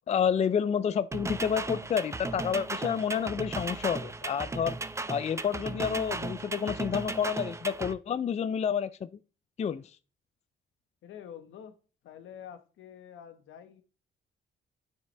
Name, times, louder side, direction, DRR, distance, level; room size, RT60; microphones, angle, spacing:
voice 1, 0.1-4.8 5.1-9.1 9.6-9.9, left 7 dB, 35° left, 0.4 m, -29 dB
sound 1, 1.1-7.9, right 3 dB, 15° right, 0.5 m, -36 dB
voice 2, 11.0-11.7 12.0-13.8, left 9 dB, 80° left, 1.3 m, -47 dB
9.1 x 6.4 x 3.4 m
cardioid pair, 90°, 20 cm